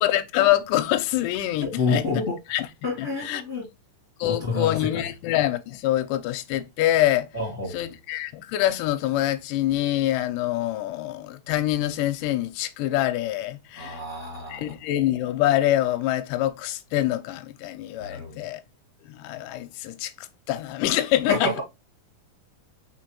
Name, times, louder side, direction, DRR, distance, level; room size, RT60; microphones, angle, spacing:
voice 1, 0.0-2.2 2.5-2.7 3.0-3.4 4.2-7.3 7.7-14.0 14.5-18.6 19.0-21.5, left 14 dB, 80° left, 2.1 m, -25 dB
voice 2, 1.6-2.4 2.8-3.6 4.2-5.1 7.3-7.8 13.8-14.7 18.0-18.4 21.3-21.6, left 3 dB, 25° left, 2.0 m, -28 dB
4.8 x 3.8 x 2.9 m
omnidirectional pair, 4.0 m